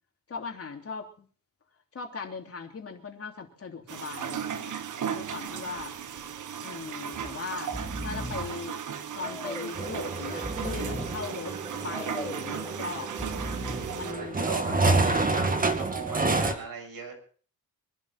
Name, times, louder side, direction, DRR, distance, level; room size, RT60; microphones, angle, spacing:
voice 1, 0.3-1.3 1.9-4.8 5.0-6.0 6.6-7.7 8.0-8.8 9.1-11.6 11.8-13.1 13.9-14.4 14.7-15.0, left 5 dB, 40° left, 3 dB, 3.2 m, -39 dB
sound 1, 3.9-14.1, right 8 dB, 55° right, 1.3 m, -36 dB
voice 2, 5.2-5.8 14.0-17.1, right 4 dB, 80° right, 4 dB, 7.6 m, -39 dB
Breathing, 5.5-5.8 6.2-6.3 7.1-7.3 7.6-8.6 9.2-9.8 10.3-11.3 11.9-12.5 13.0-14.0 14.6-15.3, equal, 5° left, 3.1 m, -38 dB
sound 2, 9.7-16.5, right 3 dB, 25° right, 2.1 m, -29 dB
25.0 x 12.0 x 4.2 m, 0.43 s
cardioid pair, 120°, 35 cm